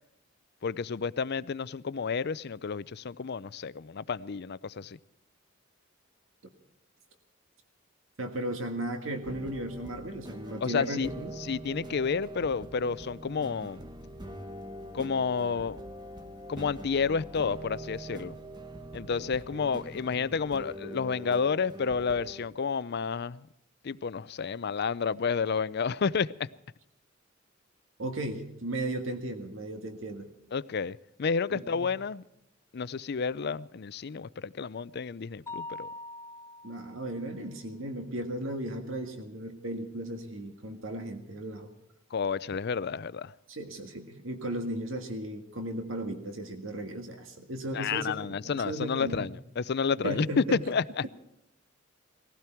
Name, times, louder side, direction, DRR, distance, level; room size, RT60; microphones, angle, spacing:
voice 1, 0.6-5.0 10.6-11.1 11.4-13.8 14.9-15.8 16.5-18.3 18.9-23.5 23.8-26.5 30.5-32.2 32.7-35.9 42.1-43.3 47.7-51.0, left 5 dB, 55° left, 0.5 m, -30 dB
voice 2, 8.2-11.3 19.2-19.8 28.0-30.3 31.5-31.9 36.6-41.7 43.5-49.3 50.0-50.6, right 1 dB, 85° right, 1.8 m, -36 dB
sound 1, 9.2-22.5, right 1 dB, 20° right, 1.3 m, -44 dB
Mallet percussion, 35.5-37.2, left 2 dB, 15° left, 0.7 m, -42 dB
19.5 x 16.0 x 4.5 m
head